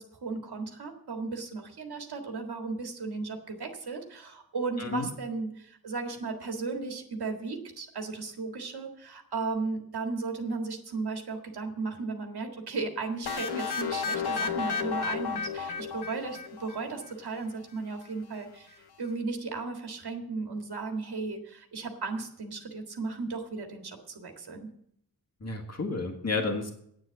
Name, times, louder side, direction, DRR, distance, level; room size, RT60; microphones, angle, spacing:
voice 1, 0.0-24.7, right 4 dB, 90° right, 3 dB, 1.8 m, -35 dB
sound 1, 13.3-17.0, left 6 dB, 90° left, 1.0 m, -32 dB
voice 2, 25.4-26.7, left 3 dB, 45° left, 3 dB, 1.8 m, -31 dB
9.1 x 7.4 x 8.3 m, 0.70 s
cardioid pair, 65°, 38 cm